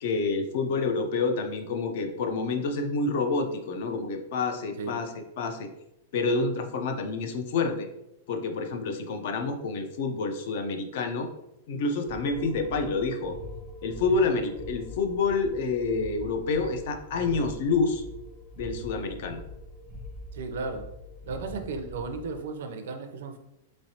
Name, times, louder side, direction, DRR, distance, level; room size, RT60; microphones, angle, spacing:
voice 1, 0.0-5.1 5.4-5.7 6.1-7.9 8.3-11.3 11.7-13.4 13.8-18.0 18.6-19.4, left 4 dB, 55° left, 5 dB, 0.5 m, -28 dB
sound 1, 12.1-22.4, left 1 dB, ahead, 0.6 m, -43 dB
voice 2, 17.1-17.5 20.3-20.9 21.3-23.4, right 4 dB, 70° right, 6 dB, 0.5 m, -35 dB
3.9 x 3.1 x 2.7 m, 0.88 s
supercardioid pair, 165°, 0 cm